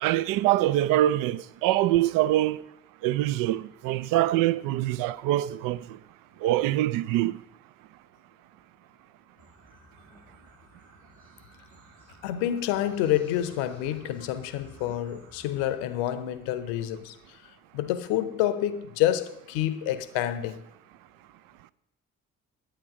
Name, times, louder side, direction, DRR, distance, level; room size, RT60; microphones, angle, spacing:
voice 1, 0.0-2.6 3.0-5.8 6.4-7.4, right 14 dB, 55° right, 0.5 m, -24 dB
sound 1, 9.4-15.8, equal, 80° right, 3.3 m, -55 dB
voice 2, 12.2-17.4 17.7-20.6, left 12 dB, 65° left, 0.8 m, -28 dB
10.0 x 8.9 x 4.9 m
figure-of-eight pair, 45°, 42 cm